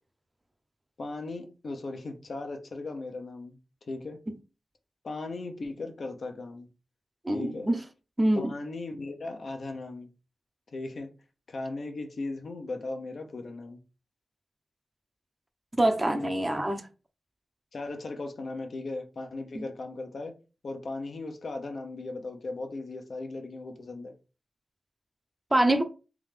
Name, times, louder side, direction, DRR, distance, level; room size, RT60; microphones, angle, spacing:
voice 1, 1.0-3.6 3.9-4.2 5.0-6.7 7.3-7.7 8.3-10.1 10.7-11.1 11.5-13.8 17.7-20.3 20.6-24.1, left 2 dB, 70° left, 0.8 m, -37 dB
voice 2, 7.2-7.8 8.2-8.5 15.8-16.9 19.5-19.6 25.5-25.8, right 1 dB, 25° right, 0.8 m, -25 dB
3.6 x 3.2 x 3.3 m
cardioid pair, 50°, 0 cm